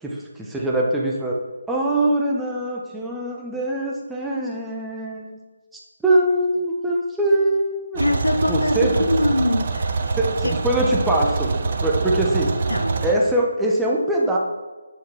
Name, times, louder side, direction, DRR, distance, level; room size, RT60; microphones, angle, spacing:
voice 1, 0.0-1.4 1.7-5.4 6.0-8.0 8.5-9.1 10.2-12.5 13.0-14.4, right 1 dB, 5° right, -3 dB, 1.1 m, -22 dB
sound 1, 7.9-13.1, right 4 dB, 40° right, 1.0 m, -25 dB
voice 2, 8.0-10.1 10.4-10.6 12.7-12.9, left 1 dB, 80° left, 8 dB, 1.1 m, -22 dB
8.3 x 7.2 x 6.2 m, 1.3 s
figure-of-eight pair, 150°, 0 cm